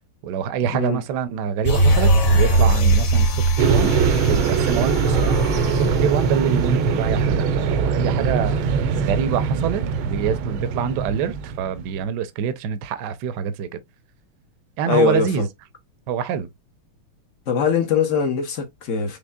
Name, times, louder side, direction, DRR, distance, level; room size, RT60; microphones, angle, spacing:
voice 1, 0.2-3.9 4.3-5.3 5.7-13.8 14.8-15.5 16.1-16.5, right 8 dB, 70° right, 1.1 m, -25 dB
sound 1, 1.6-7.3 7.6-7.7, right 1 dB, 45° left, 1.2 m, -20 dB
sound 2, 3.6-11.9, right 6 dB, 85° right, 1.5 m, -22 dB
voice 2, 14.9-15.3 17.5-19.2, left 7 dB, 60° left, 0.8 m, -21 dB
5.3 x 3.1 x 2.2 m
omnidirectional pair, 2.3 m